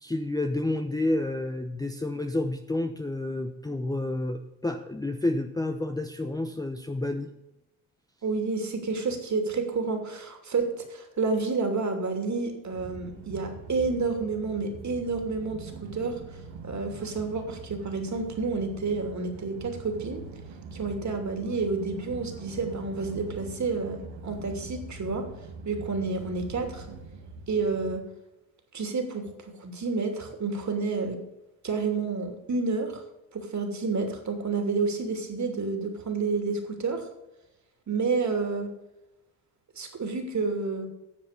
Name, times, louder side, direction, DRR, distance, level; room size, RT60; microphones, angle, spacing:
voice 1, 0.0-7.3, left 2 dB, 10° left, 6 dB, 0.8 m, -30 dB
voice 2, 8.2-16.4 16.6-20.2 20.7-25.2 25.6-26.9 27.5-28.0 28.7-31.2 31.6-33.0 33.3-37.1 37.9-38.7 39.7-40.9, right 4 dB, 35° right, 4 dB, 2.9 m, -30 dB
sound 1, 12.7-27.9, right 4 dB, 70° right, 1.8 m, -43 dB
10.5 x 6.9 x 6.7 m, 0.91 s
hypercardioid pair, 65°, 46 cm